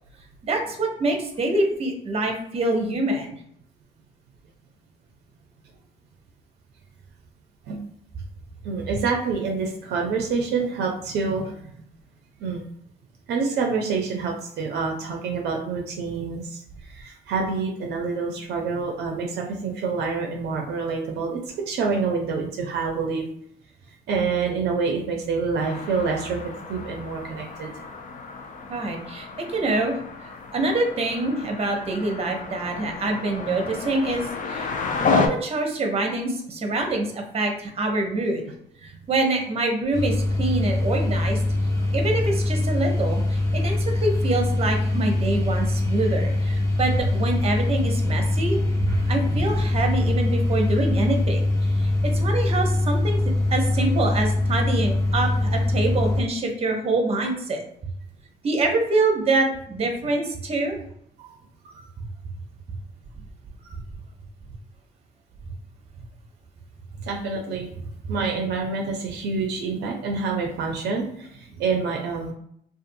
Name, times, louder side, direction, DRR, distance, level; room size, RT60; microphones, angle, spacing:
voice 1, 0.4-3.4 28.7-30.0 30.5-34.7 35.1-38.4 38.8-41.4 41.9-48.6 49.1-51.5 51.8-53.2 53.5-57.6 58.4-60.8, right 2 dB, 35° right, 3 dB, 0.7 m, -25 dB
voice 2, 8.6-11.7 12.4-12.6 13.3-23.2 23.9-26.4 26.7-27.7 29.6-29.8 61.2-61.3 61.7-61.8 63.6-63.8 67.0-67.8 68.1-72.3, right 4 dB, 70° right, 1 dB, 0.5 m, -27 dB
sound 1, 25.6-35.3, left 4 dB, 45° left, 0.5 m, -31 dB
sound 2, 39.9-56.2, left 2 dB, 20° left, 1.1 m, -23 dB
2.5 x 2.4 x 2.6 m, 0.69 s
supercardioid pair, 70°, 18 cm